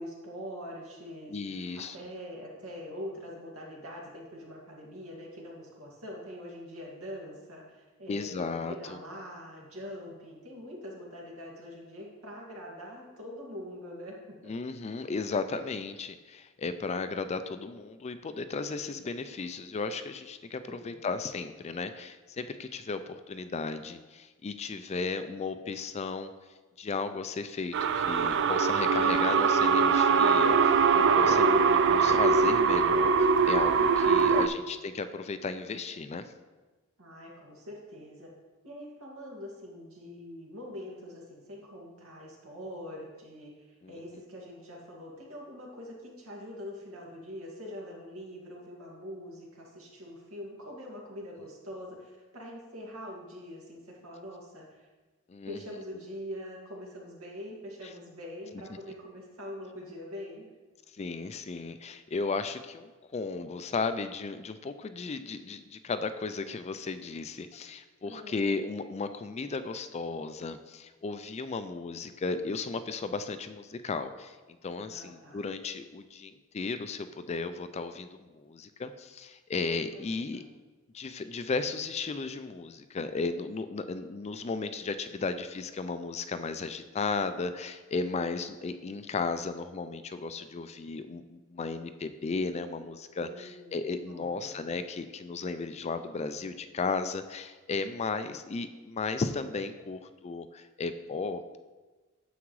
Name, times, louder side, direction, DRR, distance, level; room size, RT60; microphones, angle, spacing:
voice 1, 0.0-14.5 20.7-21.0 37.0-38.3 38.6-54.9 55.5-60.5 68.1-68.5 74.8-75.4 79.9-80.4 93.2-93.8 94.1-94.6, equal, 90° right, -2 dB, 2.1 m, -44 dB
voice 2, 1.3-2.0 8.1-9.0 14.4-26.3 26.8-36.3 43.8-44.0 55.3-55.6 61.0-74.4 74.6-80.4 80.9-101.6, left 4 dB, 30° left, 10 dB, 0.4 m, -35 dB
sound 1, 27.7-34.5, right 5 dB, 55° right, 0.4 m, -22 dB
9.6 x 7.1 x 3.2 m, 1.3 s
head